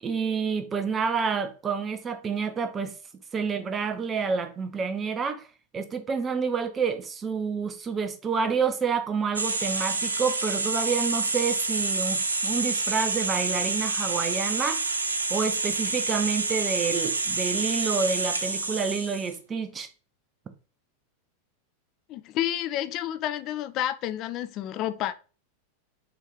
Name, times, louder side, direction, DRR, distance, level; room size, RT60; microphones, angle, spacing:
voice 1, 0.0-3.0 3.3-5.5 5.7-14.8 15.3-19.9, right 5 dB, 20° right, 0.6 m, -28 dB
sound 1, 9.4-19.4, right 3 dB, 75° right, 0.5 m, -28 dB
voice 2, 22.1-25.1, left 12 dB, 35° left, 0.3 m, -30 dB
3.5 x 2.9 x 3.4 m
figure-of-eight pair, 90°, 0 cm